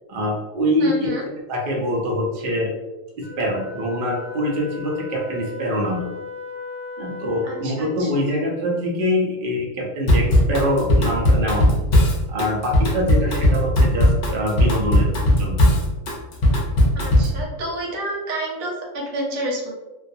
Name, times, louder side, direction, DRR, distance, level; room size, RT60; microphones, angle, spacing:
voice 1, 0.1-1.1 1.5-2.7 3.1-6.0 7.0-11.7 12.3-15.1 15.4-15.7, equal, 55° right, -2 dB, 0.6 m, -24 dB
voice 2, 0.8-1.2 7.4-8.1 16.9-19.7, right 1 dB, 85° right, -1 dB, 1.1 m, -29 dB
Wind instrument woodwind instrument, 3.2-7.8, left 4 dB, 20° right, 0.8 m, -36 dB
Drum kit / Drum, 10.1-17.4, left 1 dB, 55° left, 0.5 m, -17 dB
2.3 x 2.3 x 2.6 m, 1.1 s
omnidirectional pair, 1.4 m